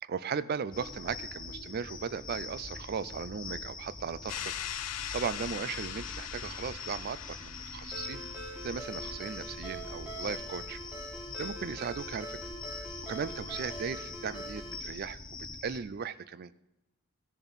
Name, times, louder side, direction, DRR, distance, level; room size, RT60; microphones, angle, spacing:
voice 1, 0.0-4.5 5.1-8.2 8.6-10.8 11.4-12.4 12.8-15.2 15.6-16.5, right 6 dB, 45° right, 16 dB, 0.3 m, -37 dB
sound 1, 0.7-15.8, left 3 dB, 20° left, 0.8 m, -43 dB
sound 2, 4.3-9.1, left 11 dB, 90° left, 0.5 m, -41 dB
Ringtone, 7.9-14.8, right 1 dB, 5° right, 2.1 m, -44 dB
15.5 x 6.9 x 4.1 m, 0.99 s
head